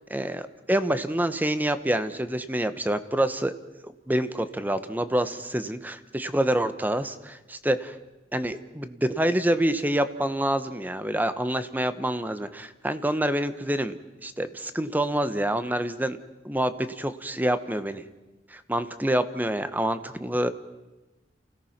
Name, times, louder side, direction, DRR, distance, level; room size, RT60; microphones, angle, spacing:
voice 1, 0.1-3.5 3.8-7.9 8.3-14.0 14.2-16.2 16.4-18.0 18.5-20.5, right 1 dB, 10° right, 11 dB, 0.9 m, -27 dB
28.5 x 17.0 x 5.9 m, 1.1 s
head